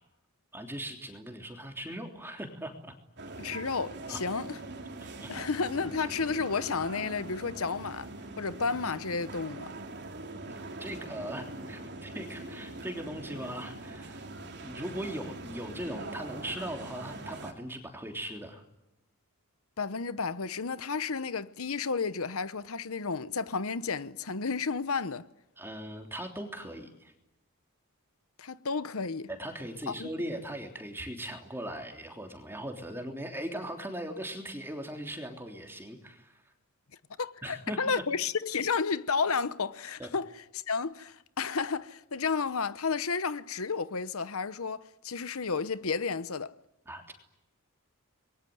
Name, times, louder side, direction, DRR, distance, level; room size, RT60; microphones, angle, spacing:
voice 1, 0.5-2.9 4.1-4.2 5.0-5.5 10.5-14.2 14.6-18.6 25.6-27.1 29.3-36.4 37.4-37.8 40.0-40.1 46.9-47.1, right 1 dB, 10° right, 3.3 m, -39 dB
sound 1, 3.2-17.5, right 2 dB, 50° right, 3.1 m, -42 dB
voice 2, 3.4-4.6 5.3-8.1 8.4-9.7 19.8-25.3 28.4-29.3 29.9-30.1 37.2-46.5, left 5 dB, 70° left, 0.9 m, -32 dB
28.0 x 22.0 x 9.4 m
head